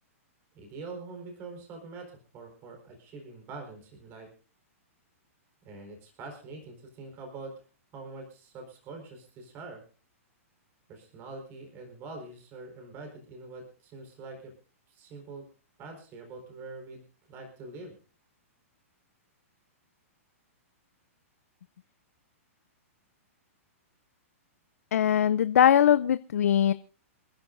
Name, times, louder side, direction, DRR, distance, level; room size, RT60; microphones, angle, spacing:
voice 1, 0.5-4.3 5.6-7.5 7.9-9.8 10.9-14.5 14.9-15.5 15.8-18.0, right 3 dB, 30° right, 3 dB, 4.3 m, -44 dB
voice 2, 24.9-26.7, left 9 dB, 75° left, 13 dB, 0.5 m, -21 dB
28.0 x 10.5 x 2.6 m, 0.39 s
hypercardioid pair, 150°, 8 cm